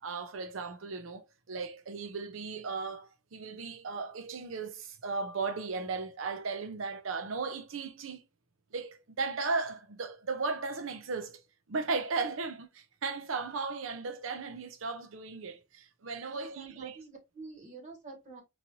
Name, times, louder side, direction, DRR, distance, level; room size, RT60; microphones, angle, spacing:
voice 1, 0.0-8.2 8.7-11.4 11.7-17.0, right 4 dB, 75° right, 0.6 m, -36 dB
voice 2, 16.2-18.4, right 3 dB, 40° right, 1.2 m, -48 dB
3.1 x 2.7 x 2.8 m
head